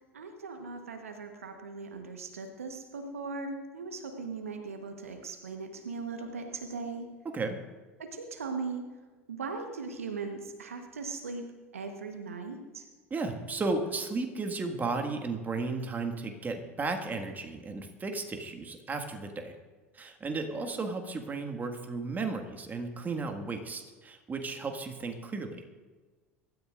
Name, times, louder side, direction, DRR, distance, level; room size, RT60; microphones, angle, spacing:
voice 1, 0.0-7.1 8.0-8.8 9.3-11.4 11.7-12.9 20.6-20.8, right 4 dB, 80° right, 5 dB, 1.2 m, -39 dB
voice 2, 13.1-19.6 19.9-25.6, right 3 dB, 25° right, 5 dB, 1.8 m, -34 dB
24.5 x 13.0 x 2.6 m, 1.4 s
figure-of-eight pair, 75°, 7 cm